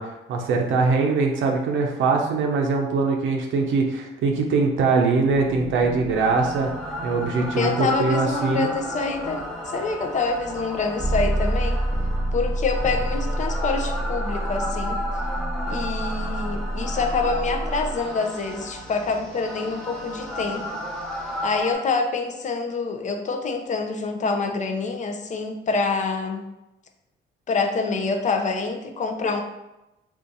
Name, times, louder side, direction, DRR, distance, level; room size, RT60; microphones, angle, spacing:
voice 1, 0.0-6.7 7.0-8.7, right 4 dB, 80° right, 2 dB, 0.5 m, -22 dB
sound 1, 5.3-21.7, equal, ahead, 0.8 m, -29 dB
voice 2, 7.6-11.8 12.3-15.0 15.7-20.8 21.4-26.4 27.5-29.4, left 4 dB, 40° left, 5 dB, 0.5 m, -26 dB
2.6 x 2.4 x 3.9 m, 0.95 s
cardioid pair, 90°, 20 cm